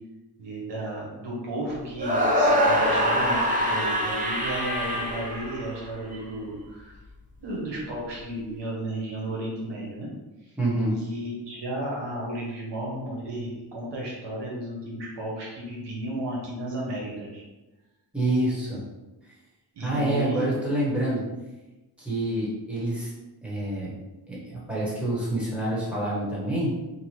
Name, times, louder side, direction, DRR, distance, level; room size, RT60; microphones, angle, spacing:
voice 1, 0.4-6.9 7.4-10.1 10.4-10.6 10.9-17.4 19.7-20.5, right 1 dB, 85° right, -4 dB, 0.9 m, -33 dB
sound 1, 2.0-6.2, equal, 20° right, 0.6 m, -24 dB
voice 2, 10.6-11.0 18.1-18.8 19.8-21.2 22.0-23.1 23.4-23.9 24.3-26.7, right 1 dB, 5° right, -8 dB, 1.1 m, -27 dB
2.8 x 2.1 x 3.0 m, 1.0 s
cardioid pair, 80°, 41 cm